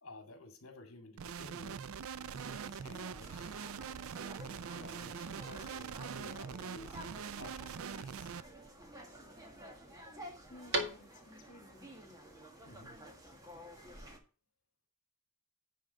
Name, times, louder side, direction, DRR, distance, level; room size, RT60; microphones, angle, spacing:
voice 1, 0.0-1.8 2.8-3.5 4.4-8.3 12.6-13.0, left 2 dB, 75° left, 2.1 m, -53 dB
sound 1, 1.2-8.4, right 7 dB, 75° right, 0.4 m, -43 dB
sound 2, 2.2-14.2, equal, 15° right, 1.5 m, -52 dB
sound 3, 3.1-11.6, right 2 dB, 50° right, 1.8 m, -46 dB
voice 2, 10.5-12.1, left 2 dB, 35° left, 2.2 m, -56 dB
10.0 x 3.8 x 6.3 m
head